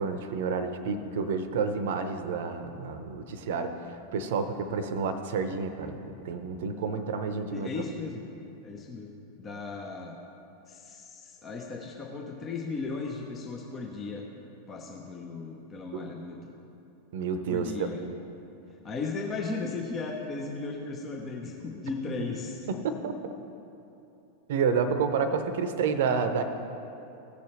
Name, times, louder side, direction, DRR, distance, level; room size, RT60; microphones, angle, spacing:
voice 1, 0.0-7.7 15.9-16.1 17.1-17.9 22.7-23.3 24.5-26.4, right 5 dB, 55° right, 9 dB, 0.7 m, -30 dB
voice 2, 7.5-8.2 8.6-10.2 10.7-14.3 14.7-16.5 17.5-18.0 18.8-22.6, left 4 dB, 25° left, 0 dB, 0.9 m, -36 dB
16.5 x 6.8 x 3.2 m, 2.9 s
figure-of-eight pair, 90°, 0 cm